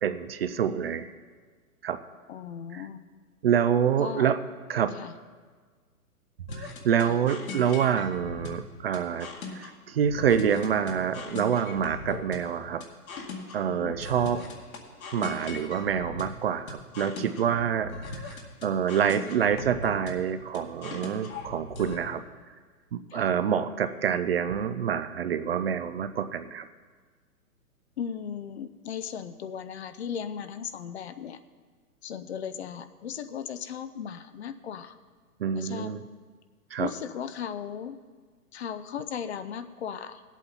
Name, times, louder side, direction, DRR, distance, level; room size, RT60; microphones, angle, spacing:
voice 1, 0.0-1.1 1.8-2.0 2.7-2.8 3.4-4.4 4.7-5.0 6.6-12.8 13.5-14.5 15.1-22.2 22.9-26.7 35.4-36.0 36.7-36.9, right 8 dB, 40° right, 11 dB, 0.5 m, -27 dB
voice 2, 2.3-3.0 4.0-4.3 5.0-5.1 7.0-7.2 13.6-13.9 23.1-23.3 28.0-31.4 32.0-35.0 35.5-35.9 36.8-38.0 38.5-40.2, left 8 dB, 45° left, 11 dB, 0.7 m, -36 dB
sound 1, 6.5-22.0, left 3 dB, 65° left, 2.1 m, -39 dB
17.5 x 8.2 x 4.2 m, 1.5 s
figure-of-eight pair, 125°, 45 cm